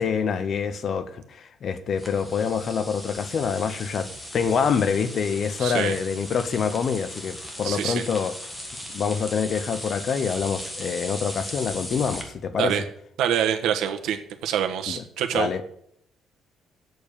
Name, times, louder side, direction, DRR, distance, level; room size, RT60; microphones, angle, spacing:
voice 1, 0.0-8.3 8.9-12.7 14.9-15.0 15.3-15.6, left 6 dB, 45° left, 0.8 m, -26 dB
sound 1, 2.0-12.2, left 1 dB, 10° left, 1.6 m, -38 dB
voice 2, 5.6-6.0 7.6-8.0 12.6-12.8 13.2-15.5, right 9 dB, 90° right, 1.2 m, -26 dB
7.9 x 7.1 x 6.6 m
cardioid pair, 155°, 0 cm